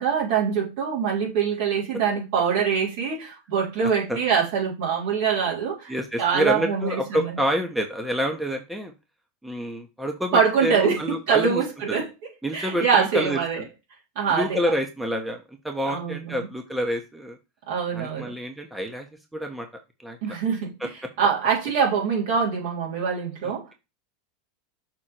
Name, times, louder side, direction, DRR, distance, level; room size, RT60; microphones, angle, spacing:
voice 1, 0.0-7.4 10.3-11.0 11.3-12.1 12.5-13.6 14.1-14.6 15.9-16.4 17.7-18.3 20.2-20.7 21.2-23.7, right 6 dB, 65° right, 3.5 m, -24 dB
voice 2, 5.9-8.9 9.4-11.6 11.9-12.0 12.4-13.7 14.3-17.4 17.9-19.1 19.3-19.7 20.0-20.4 20.8-20.9 23.4-23.7, equal, 5° right, 1.2 m, -28 dB
6.3 x 3.8 x 4.4 m
hypercardioid pair, 90°, 0 cm